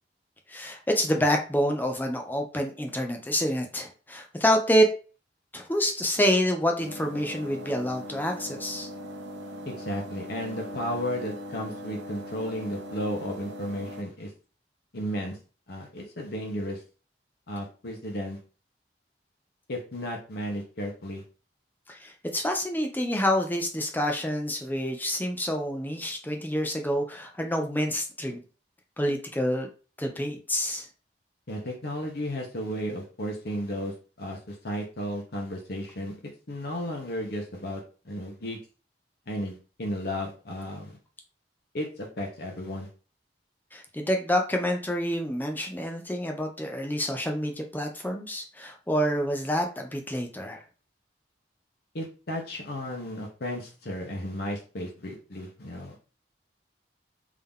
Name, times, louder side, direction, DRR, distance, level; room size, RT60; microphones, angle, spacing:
voice 1, 0.5-4.9 5.5-8.9 21.9-28.4 29.0-29.7 30.0-30.9 43.7-50.6, equal, 10° left, 3 dB, 0.6 m, -27 dB
sound 1, 6.8-14.0, equal, 85° right, 0.8 m, -40 dB
voice 2, 9.6-14.3 14.9-15.4 15.7-16.8 17.5-18.4 19.7-21.2 31.5-36.2 36.5-38.6 39.3-41.0 41.7-42.9 51.9-56.0, equal, 60° left, 0 dB, 1.0 m, -34 dB
3.7 x 2.8 x 3.6 m, 0.36 s
head